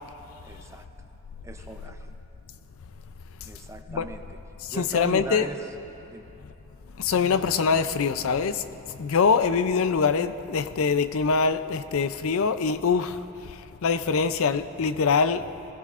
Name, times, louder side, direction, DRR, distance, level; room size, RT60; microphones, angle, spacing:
voice 1, 0.4-0.8 1.4-2.1 3.4-4.2 4.7-5.7 6.1-6.3, right 1 dB, 15° right, 6 dB, 0.5 m, -37 dB
voice 2, 4.6-5.5 7.0-15.5, left 5 dB, 65° left, 12 dB, 0.5 m, -24 dB
20.5 x 17.0 x 2.5 m, 3.0 s
head